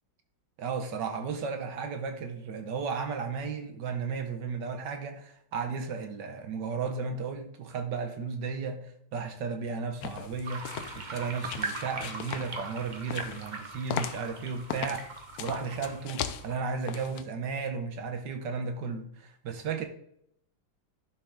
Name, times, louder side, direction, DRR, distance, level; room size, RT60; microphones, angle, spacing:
voice 1, 0.6-10.6 11.0-15.1 15.4-19.9, right 5 dB, 65° right, 1.6 m, -34 dB
sound 1, 10.0-17.2, left 9 dB, 75° left, 0.8 m, -39 dB
sound 2, 10.4-16.9, right 3 dB, 40° right, 0.7 m, -41 dB
11.5 x 6.3 x 3.5 m
omnidirectional pair, 2.2 m